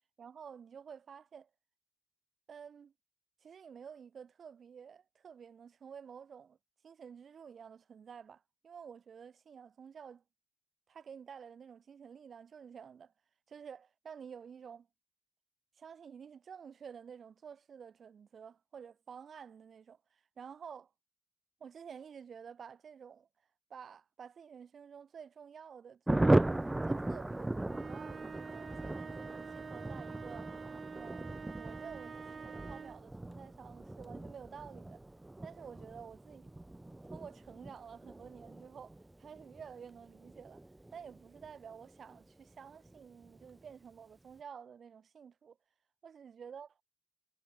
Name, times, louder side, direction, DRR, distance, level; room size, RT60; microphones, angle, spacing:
voice 1, 0.2-1.5 2.5-2.9 3.4-6.6 6.8-10.2 10.9-13.1 13.5-14.9 15.8-20.9 21.6-23.3 23.7-26.4 26.9-30.5 30.9-35.0 35.4-36.5 37.1-40.6 40.9-45.6 46.0-46.8, right 7 dB, 60° right, 3.6 m, -51 dB
Thunder, 26.1-42.2 42.5-42.6 42.8-43.0 43.2-43.7, right 2 dB, 10° right, 1.2 m, -37 dB
sound 1, 27.6-33.1, right 5 dB, 45° right, 3.4 m, -47 dB
wide cardioid pair, 165°, 0 cm